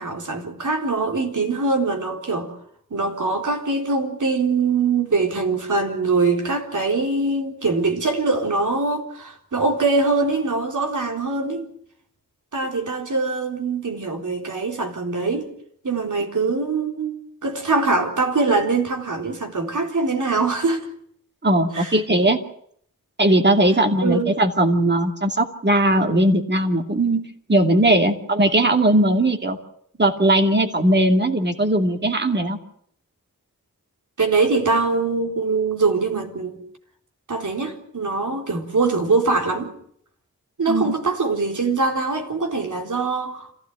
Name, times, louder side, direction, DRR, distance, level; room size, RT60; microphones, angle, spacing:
voice 1, 0.0-2.5 2.9-11.7 12.5-15.5 15.8-20.9 21.7-22.0 24.0-24.3 27.9-28.0 34.2-36.6 37.3-39.7 40.6-43.5, right 3 dB, 65° right, 4.1 m, -23 dB
voice 2, 21.4-22.4 23.2-27.2 27.5-29.6 30.0-32.6 40.7-40.9, right 1 dB, 30° right, 2.6 m, -19 dB
26.5 x 16.0 x 9.3 m
wide cardioid pair, 120°, 33 cm